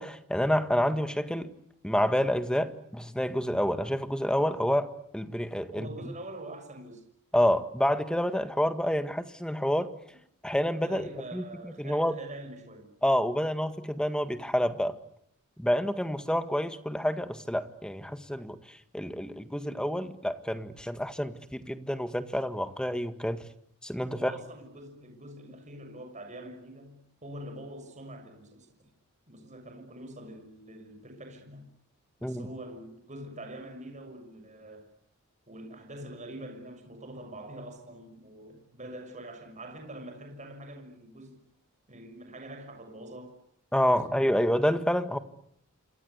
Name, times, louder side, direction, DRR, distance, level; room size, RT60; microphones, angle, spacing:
voice 1, 0.0-1.5 1.8-5.9 7.3-9.9 10.4-12.2 13.0-15.0 15.6-23.4 23.8-24.3 32.2-32.5 43.7-45.2, equal, 5° left, 1.8 m, -28 dB
voice 2, 5.7-7.0 10.8-12.9 24.1-28.7 29.3-31.7 32.2-34.9 35.5-41.4 41.9-43.4 43.9-44.5, right 1 dB, 35° right, 6.6 m, -44 dB
28.5 x 25.0 x 8.4 m
head